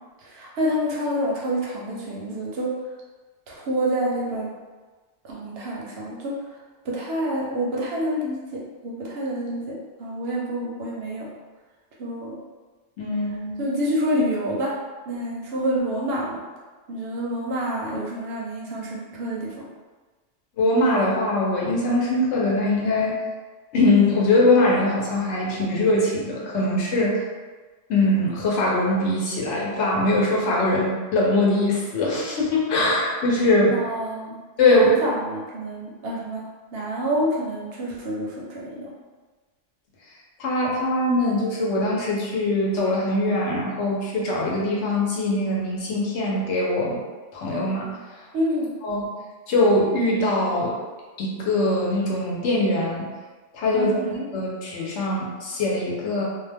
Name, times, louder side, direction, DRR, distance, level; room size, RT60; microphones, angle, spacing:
voice 1, 0.2-2.7 3.5-4.5 5.2-6.3 6.8-11.3 12.0-12.4 13.6-14.7 15.1-16.4 16.9-19.7 33.7-34.4 34.7-36.4 36.7-38.9 48.3-48.7 53.7-54.3, equal, 65° right, -4 dB, 0.7 m, -27 dB
voice 2, 13.0-13.6 20.6-23.2 23.7-27.2 27.9-33.8 34.6-35.0 40.4-47.0 47.3-47.9 48.8-49.1 49.5-50.7 51.2-53.1 53.5-53.9 54.3-56.2, left 2 dB, 70° left, -4 dB, 0.9 m, -22 dB
2.4 x 2.2 x 3.3 m, 1.3 s
omnidirectional pair, 1.2 m